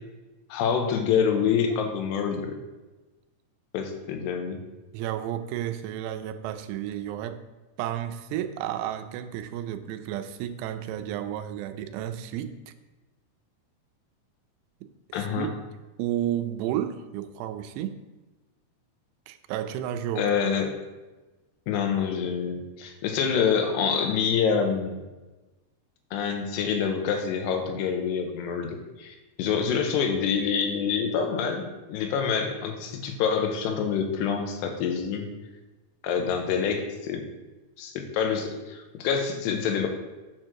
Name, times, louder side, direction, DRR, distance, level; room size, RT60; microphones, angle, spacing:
voice 1, 0.5-2.6 3.7-4.6 15.1-15.5 20.2-20.7 21.7-25.0 26.1-35.3 36.0-37.2 37.8-39.9, left 6 dB, 85° left, 4 dB, 3.0 m, -26 dB
voice 2, 4.9-7.4 7.8-12.7 14.8-14.9 15.2-15.5 16.0-18.0 19.3-20.3, right 11 dB, 90° right, 9 dB, 2.8 m, -32 dB
7.4 x 4.6 x 6.2 m, 1.1 s
omnidirectional pair, 4.8 m